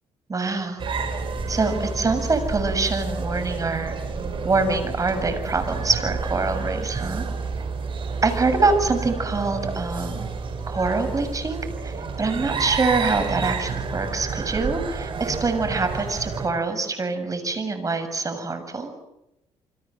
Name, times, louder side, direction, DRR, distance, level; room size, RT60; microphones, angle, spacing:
voice 1, 0.3-0.8 1.5-3.9 4.4-7.3 8.2-10.3 10.7-18.9, right 3 dB, 30° right, 8 dB, 7.3 m, -25 dB
sound 1, 0.8-16.5, right 4 dB, 50° right, 6.6 m, -30 dB
29.0 x 26.0 x 7.9 m, 0.86 s
cardioid pair, 95°, 11 cm